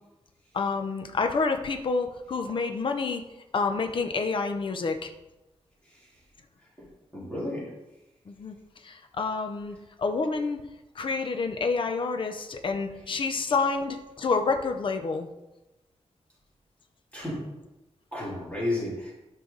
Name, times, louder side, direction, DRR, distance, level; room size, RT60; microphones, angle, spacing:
voice 1, 0.5-3.3 3.5-5.1 8.3-8.5 8.8-10.6 10.9-15.3, left 4 dB, 50° left, 6 dB, 0.7 m, -28 dB
voice 2, 7.1-7.7 17.1-17.4 18.1-19.1, left 1 dB, 10° left, -7 dB, 3.4 m, -32 dB
12.5 x 5.8 x 3.9 m, 0.98 s
wide cardioid pair, 175°, 11 cm